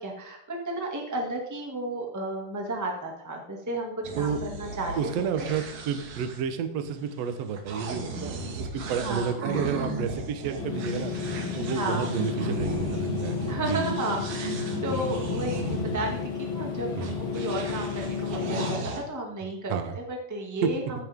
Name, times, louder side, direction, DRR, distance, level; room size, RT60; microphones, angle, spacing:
voice 1, 0.0-5.5 9.0-9.3 11.7-12.1 13.5-14.5 14.8-16.2 16.5-20.8, right 2 dB, 10° right, 0 dB, 0.8 m, -33 dB
sound 1, 4.0-16.2 17.0-19.0, right 2 dB, 55° right, 2.9 m, -35 dB
voice 2, 5.0-11.1 11.6-13.9 16.9-17.2 19.7-20.0 20.6-20.8, right 6 dB, 90° right, 8 dB, 1.4 m, -31 dB
sound 2, 10.6-18.8, left 6 dB, 70° left, 1.2 m, -32 dB
15.0 x 13.0 x 3.7 m, 0.79 s
omnidirectional pair, 4.8 m